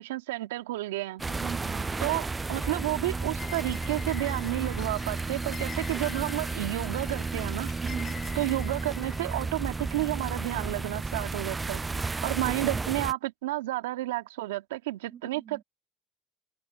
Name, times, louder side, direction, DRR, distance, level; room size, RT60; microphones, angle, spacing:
voice 1, 0.0-1.2 2.0-7.7 8.4-11.8 12.2-15.6, right 18 dB, 85° right, 1.9 m, -31 dB
sound 1, 1.2-13.1, right 3 dB, 20° right, 0.3 m, -33 dB
sound 2, 1.3-11.9, left 8 dB, 45° left, 7.8 m, -47 dB
voice 2, 1.3-2.0 7.8-8.3 15.1-15.6, right 9 dB, 50° right, 1.5 m, -41 dB
hypercardioid pair, 75°, 0 cm